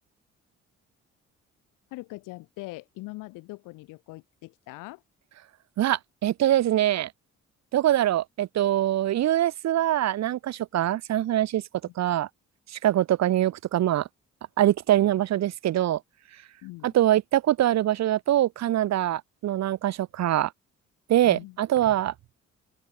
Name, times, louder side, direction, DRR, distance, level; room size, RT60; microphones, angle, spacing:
voice 1, 1.9-5.0 11.8-11.9 16.6-16.9 21.2-21.6, left 21 dB, 80° left, 1.9 m, -42 dB
voice 2, 5.8-7.1 7.7-11.6 12.0-12.3 12.7-14.1 14.6-16.0 16.8-20.5 21.1-22.1, right 12 dB, 55° right, 0.8 m, -23 dB
open air
hypercardioid pair, 50°, 31 cm